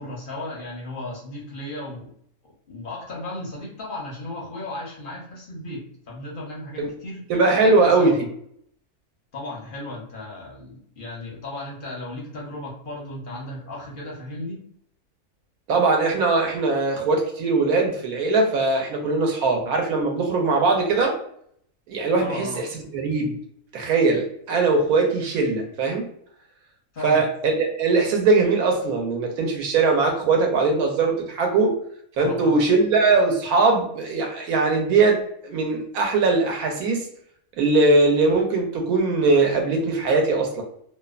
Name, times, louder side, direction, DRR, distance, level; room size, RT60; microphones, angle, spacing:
voice 1, 0.0-2.1 2.7-7.3 7.6-8.2 9.3-14.6 22.2-22.6 26.9-27.2 32.2-32.7, left 2 dB, 55° left, -2 dB, 0.6 m, -35 dB
voice 2, 7.3-8.2 15.7-21.1 21.9-22.7 22.9-23.4 23.7-26.1 27.0-31.8 32.2-37.1 37.6-40.6, right 3 dB, 75° right, 2 dB, 1.0 m, -20 dB
2.7 x 2.1 x 2.3 m, 0.67 s
omnidirectional pair, 1.6 m